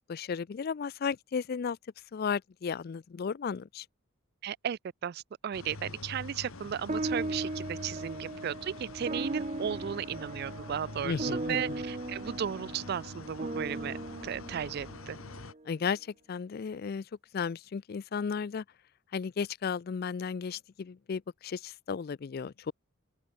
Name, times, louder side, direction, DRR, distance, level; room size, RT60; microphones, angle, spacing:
voice 1, 0.0-1.8 2.1-3.9 11.0-11.8 15.7-17.1 17.3-18.6 19.1-22.7, left 6 dB, 45° left, 0.4 m, -34 dB
voice 2, 4.4-14.0 14.2-15.2, right 8 dB, 50° right, 0.3 m, -35 dB
sound 1, 5.5-15.5, left 2 dB, 80° left, 1.6 m, -45 dB
sound 2, 6.9-15.6, right 2 dB, 35° right, 1.0 m, -38 dB
open air
head